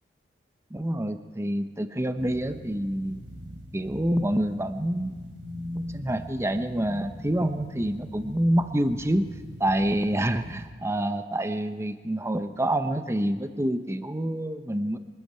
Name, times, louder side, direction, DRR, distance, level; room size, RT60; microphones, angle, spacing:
voice 1, 0.7-3.2 3.7-5.4 5.7-9.3 9.6-15.0, right 1 dB, 15° right, 9 dB, 0.9 m, -27 dB
sound 1, 2.2-10.7, equal, 70° right, 3.2 m, -41 dB
23.5 x 13.0 x 8.8 m, 1.4 s
head